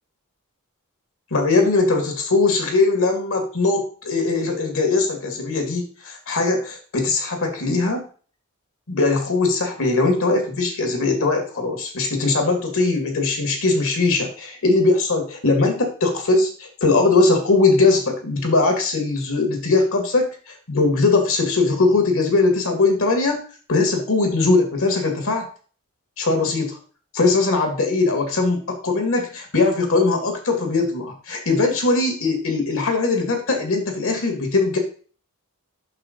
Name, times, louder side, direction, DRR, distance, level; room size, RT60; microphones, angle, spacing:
voice 1, 1.3-8.0 8.9-23.4 23.7-25.5 26.2-26.8 27.1-34.8, left 3 dB, 65° left, 3 dB, 2.1 m, -20 dB
6.2 x 5.7 x 3.9 m, 0.41 s
head